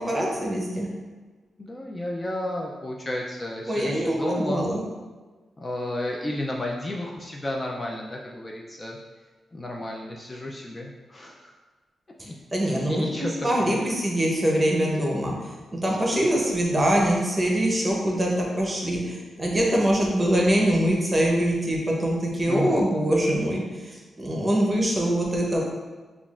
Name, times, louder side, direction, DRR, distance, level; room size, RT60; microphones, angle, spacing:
voice 1, 0.1-0.9 3.7-4.8 12.5-15.3 15.7-23.6 24.2-25.6, right 1 dB, 20° right, -2 dB, 0.8 m, -23 dB
voice 2, 1.6-4.7 5.6-9.0 9.5-11.5 12.3-13.8 22.5-22.9, left 1 dB, 25° left, -1 dB, 0.3 m, -32 dB
5.3 x 2.4 x 2.4 m, 1.3 s
cardioid pair, 105°, 0 cm